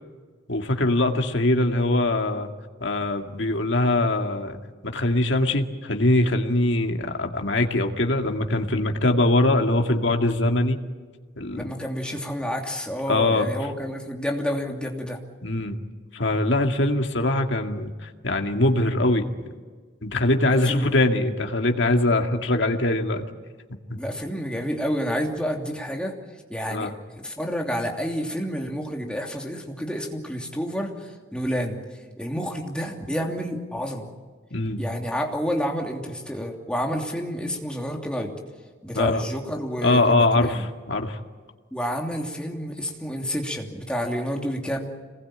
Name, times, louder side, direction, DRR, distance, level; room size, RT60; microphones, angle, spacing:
voice 1, 0.5-2.5 2.8-4.6 4.8-10.8 11.4-11.6 13.1-13.5 15.4-15.8 16.1-19.5 20.0-23.2 23.9-24.0 26.7-26.9 34.5-34.8 39.0-39.2 39.8-41.2, left 2 dB, 70° left, 3 dB, 2.2 m, -22 dB
voice 2, 11.5-15.2 20.5-21.2 23.9-26.2 26.5-31.8 32.2-34.1 34.8-38.3 38.8-40.7 41.7-44.9, equal, 5° left, 1 dB, 2.9 m, -29 dB
26.5 x 20.5 x 8.9 m, 1.5 s
head